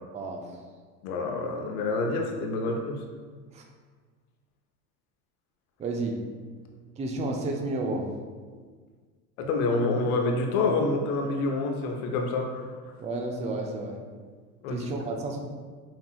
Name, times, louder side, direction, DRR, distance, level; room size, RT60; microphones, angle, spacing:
voice 1, 0.1-0.6 3.5-3.6 5.8-6.2 7.0-8.1 13.0-14.0 14.7-15.4, right 2 dB, 15° right, 2 dB, 0.4 m, -31 dB
voice 2, 1.0-3.0 9.4-12.6 14.6-14.8, left 3 dB, 65° left, 2 dB, 0.8 m, -27 dB
5.9 x 2.8 x 2.3 m, 1.5 s
hypercardioid pair, 80°, 47 cm